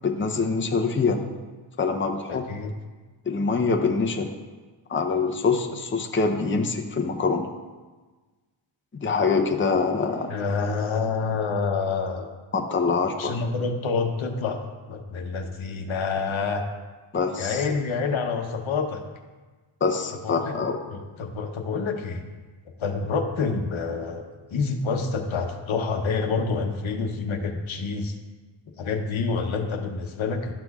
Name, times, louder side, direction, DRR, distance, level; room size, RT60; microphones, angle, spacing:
voice 1, 0.0-1.2 1.8-2.4 3.3-4.3 4.9-7.4 9.0-10.3 12.5-13.4 17.1-17.6 19.8-20.8, left 4 dB, 25° left, 3 dB, 0.7 m, -24 dB
voice 2, 2.3-2.7 10.3-12.3 13.2-16.6 17.4-19.0 20.2-20.6 20.9-22.2 22.8-28.2 28.8-30.5, left 4 dB, 70° left, 4 dB, 0.9 m, -27 dB
12.5 x 6.0 x 2.4 m, 1.3 s
cardioid pair, 75°, 49 cm